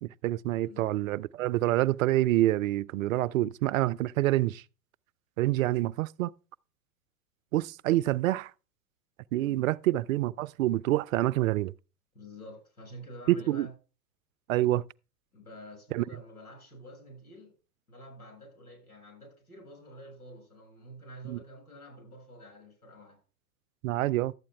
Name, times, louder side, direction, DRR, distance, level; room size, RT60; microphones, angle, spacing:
voice 1, 0.0-4.6 5.4-6.3 7.5-8.5 9.3-11.7 13.3-13.7 14.5-14.9 15.9-16.0 21.2-21.4 23.8-24.3, right 15 dB, 65° right, 0.6 m, -27 dB
voice 2, 12.1-13.7 15.3-17.5 17.9-23.2, equal, 85° left, 7.1 m, -48 dB
12.0 x 8.6 x 3.5 m
hypercardioid pair, 100°, 44 cm